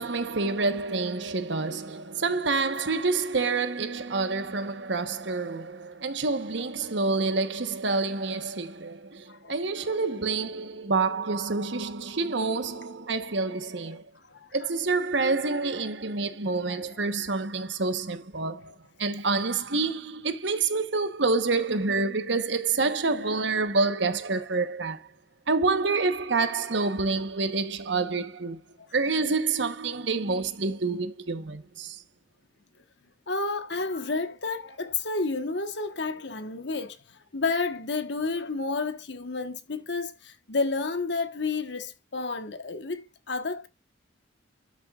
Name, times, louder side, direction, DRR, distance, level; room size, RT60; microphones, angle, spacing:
voice 1, 0.0-14.0 14.5-25.0 25.5-28.6 28.9-32.0, right 3 dB, 70° right, 1.1 m, -28 dB
voice 2, 1.6-2.0 9.3-10.0 14.3-14.5 16.7-17.0 33.3-43.7, left 3 dB, 65° left, 1.3 m, -31 dB
13.0 x 7.0 x 2.4 m
head